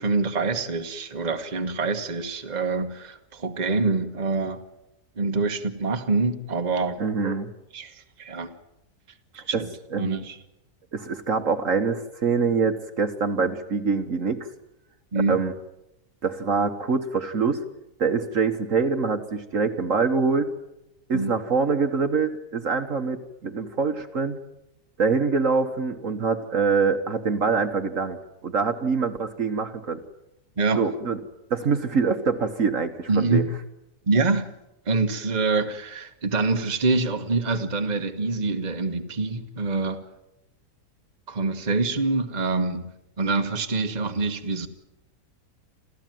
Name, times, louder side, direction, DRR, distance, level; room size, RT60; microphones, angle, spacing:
voice 1, 0.0-4.6 5.2-7.0 7.2-7.3 7.7-8.5 9.3-10.4 15.1-15.4 21.1-21.3 30.6-30.8 33.1-33.5 34.1-34.5 34.9-40.0 41.3-42.9 43.2-44.7, right 3 dB, 25° right, 6 dB, 1.5 m, -25 dB
voice 2, 7.0-7.5 9.5-9.6 9.9-10.2 10.9-14.5 15.3-15.5 16.2-17.6 18.0-20.5 21.1-24.4 25.0-30.0 30.8-31.2 31.5-33.5, right 5 dB, 50° right, 7 dB, 1.6 m, -24 dB
28.0 x 15.0 x 9.2 m, 0.90 s
omnidirectional pair, 1.8 m